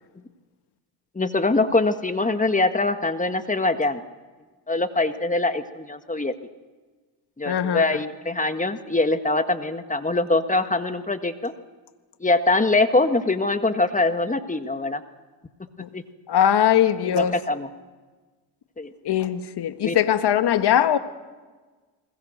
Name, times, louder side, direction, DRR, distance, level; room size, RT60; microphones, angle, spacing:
voice 1, 1.2-4.0 4.7-6.4 7.4-11.5 12.2-15.0 15.9-16.0 17.1-17.7 18.8-18.9 19.8-20.0, left 2 dB, 15° left, 1.6 m, -23 dB
voice 2, 7.5-8.0 15.8-15.9 16.3-17.3 19.0-21.0, left 10 dB, 50° left, 1.7 m, -21 dB
28.5 x 21.0 x 6.6 m
supercardioid pair, 75°, 50 cm